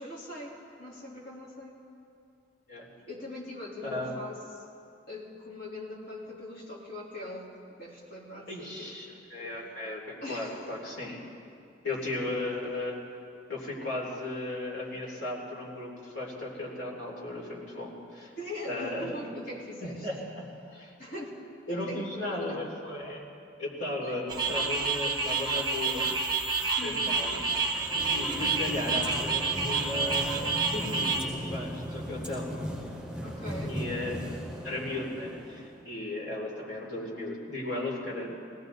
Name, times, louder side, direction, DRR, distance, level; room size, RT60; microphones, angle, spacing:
voice 1, 0.0-1.8 3.1-4.6 5.1-9.0 10.2-10.7 18.4-20.1 21.0-21.4 21.7-22.6 24.0-24.2 26.8-27.2 33.2-33.8, left 1 dB, 60° left, -6 dB, 3.7 m, -41 dB
voice 2, 3.8-4.2 8.5-11.2 11.8-13.0 13.5-18.3 18.7-19.2 19.8-20.9 21.7-23.2 23.6-26.1 26.8-27.5 28.1-32.5 33.7-34.2 34.6-38.3, left 2 dB, 85° left, -3 dB, 3.4 m, -36 dB
sound 1, 24.3-31.2, right 4 dB, 20° right, 1.0 m, -29 dB
sound 2, 27.6-35.8, equal, 5° right, 5.2 m, -38 dB
20.0 x 18.0 x 4.1 m, 2.5 s
head